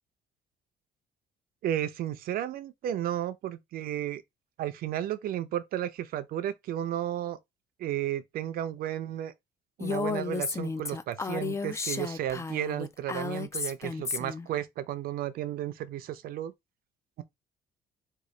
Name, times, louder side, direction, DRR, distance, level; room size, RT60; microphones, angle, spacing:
voice 1, 1.6-4.2 4.6-7.4 7.8-9.3 9.8-16.5 17.2-17.3, right 11 dB, 60° right, 0.5 m, -33 dB
Female speech woman speaking, 9.8-14.5, left 4 dB, 15° left, 0.3 m, -33 dB
3.8 x 2.4 x 3.1 m
cardioid pair, 110°, 17 cm